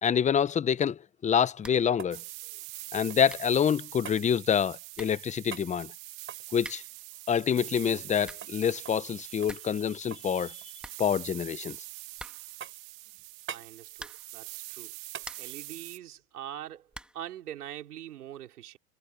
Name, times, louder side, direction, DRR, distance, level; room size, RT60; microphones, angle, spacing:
voice 1, 0.0-2.2 2.9-5.9 6.5-6.8 7.3-10.5 11.0-11.8, left 8 dB, 15° left, 0.8 m, -26 dB
sound 1, 1.4-3.4 4.0-4.2 5.5-5.7 6.2-8.2 8.4-8.6 8.8-9.1 9.4-10.3 10.6-11.2 11.7-12.2 12.6-13.0 13.5-13.7 15.1-15.3 17.7-17.8, right 8 dB, 25° right, 8.0 m, -45 dB
sound 2, 1.6-2.0 2.2-2.3 2.9-3.0 3.3-3.6 4.5-4.6 4.9-5.3 6.6-7.0 8.0-8.6 9.0-9.1 9.2-9.8 10.1-10.2 10.4-10.5 10.8-11.6 12.1-12.7 13.9-14.4 14.9-15.7 16.9-17.3, right 1 dB, ahead, 1.8 m, -47 dB
sound 3, 2.1-16.0, right 23 dB, 65° right, 2.3 m, -44 dB
voice 2, 13.5-14.9 15.4-18.8, right 11 dB, 85° right, 3.9 m, -43 dB
hypercardioid pair, 110°, 44 cm